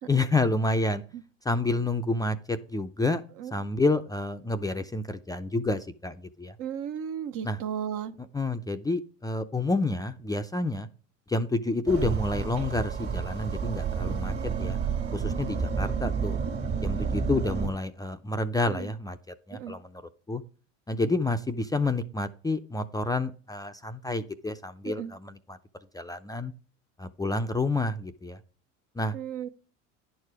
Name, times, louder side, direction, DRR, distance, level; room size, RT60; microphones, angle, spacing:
voice 1, 0.1-1.0 1.5-3.2 3.5-6.5 7.4-7.6 8.3-10.9 11.3-14.8 15.1-16.4 16.8-19.2 19.5-19.9 20.3-20.4 20.9-25.6 25.9-26.5 27.0-28.4 29.0-29.1, left 2 dB, 10° left, 0.5 m, -29 dB
voice 2, 6.6-8.1 18.7-18.9 19.5-19.7 24.8-25.1 29.1-29.5, right 8 dB, 55° right, 1.0 m, -34 dB
sound 1, 11.9-17.7, right 6 dB, 35° right, 1.8 m, -30 dB
10.5 x 4.7 x 4.9 m
supercardioid pair, 100°, 37 cm